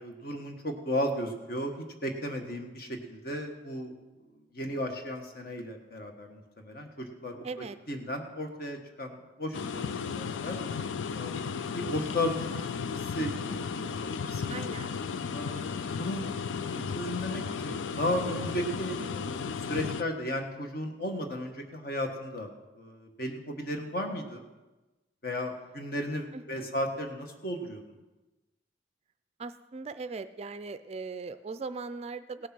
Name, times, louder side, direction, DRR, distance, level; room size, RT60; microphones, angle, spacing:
voice 1, 0.0-1.7 2.0-3.9 4.5-10.6 11.1-14.5 15.3-16.3 16.7-24.4 25.2-27.8, left 1 dB, 50° left, 4 dB, 1.5 m, -35 dB
voice 2, 7.4-7.8 14.5-14.9 26.3-26.7 29.4-32.5, right 4 dB, 35° right, 12 dB, 0.4 m, -39 dB
sound 1, 9.5-20.0, left 6 dB, 90° left, 0.5 m, -34 dB
17.0 x 6.5 x 6.1 m, 1.1 s
head